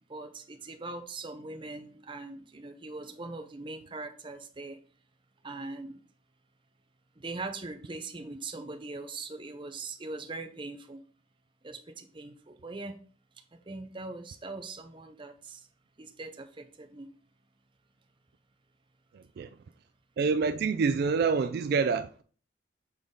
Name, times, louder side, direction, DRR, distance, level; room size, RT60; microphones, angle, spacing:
voice 1, 0.1-4.8 5.4-6.0 7.2-11.0 11.6-13.0 13.7-15.6 16.0-17.1, right 3 dB, 25° right, 0.7 m, -41 dB
voice 2, 19.1-19.5 20.2-22.2, right 5 dB, 55° right, 0.3 m, -27 dB
7.0 x 3.9 x 3.6 m
head